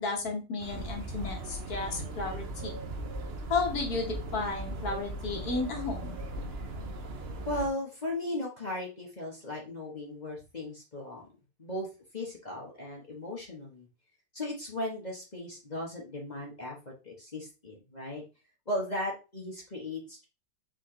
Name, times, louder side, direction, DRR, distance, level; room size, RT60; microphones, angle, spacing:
voice 1, 0.0-2.7 3.5-6.1, left 3 dB, 55° left, 2 dB, 1.5 m, -33 dB
sound 1, 0.6-7.7, right 1 dB, 60° right, 0.6 m, -38 dB
voice 2, 7.4-11.3 11.6-11.9 12.1-13.9 14.3-18.2 18.7-20.3, left 1 dB, 30° left, -3 dB, 1.0 m, -37 dB
4.3 x 3.8 x 3.1 m, 0.30 s
omnidirectional pair, 2.1 m